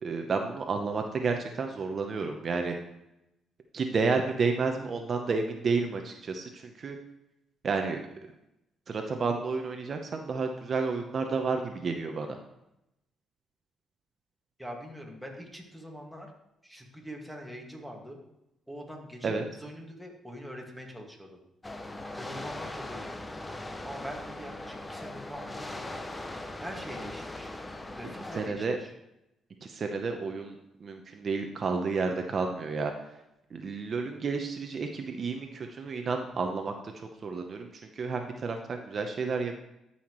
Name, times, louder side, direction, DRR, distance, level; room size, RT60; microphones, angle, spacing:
voice 1, 0.0-2.7 3.7-7.0 7.6-8.1 8.9-12.4 19.2-19.4 28.3-28.8 29.6-32.9 33.5-39.6, right 4 dB, 45° right, 4 dB, 0.8 m, -31 dB
voice 2, 14.6-16.3 16.6-18.2 18.7-21.4 22.2-23.3 23.8-25.9 26.6-27.5 27.9-28.9, equal, ahead, 0 dB, 1.9 m, -43 dB
sound 1, 21.6-28.5, left 2 dB, 15° left, 0.7 m, -40 dB
13.0 x 5.7 x 3.1 m, 0.88 s
cardioid pair, 90°, 0 cm